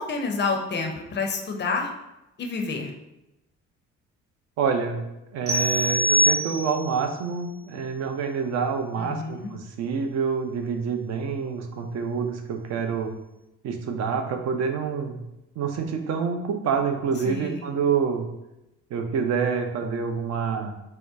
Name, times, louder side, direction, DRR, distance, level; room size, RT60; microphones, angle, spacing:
voice 1, 0.0-1.9 2.4-2.9 8.9-9.5 17.2-17.7, left 4 dB, 30° left, 3 dB, 0.6 m, -29 dB
voice 2, 4.6-5.0 5.3-13.1 13.6-15.2 15.6-18.3 18.9-20.7, right 6 dB, 45° right, 5 dB, 0.5 m, -27 dB
sound 1, 5.5-7.0, equal, 85° right, 0.7 m, -23 dB
2.8 x 2.1 x 3.4 m, 0.91 s
figure-of-eight pair, 45°, 38 cm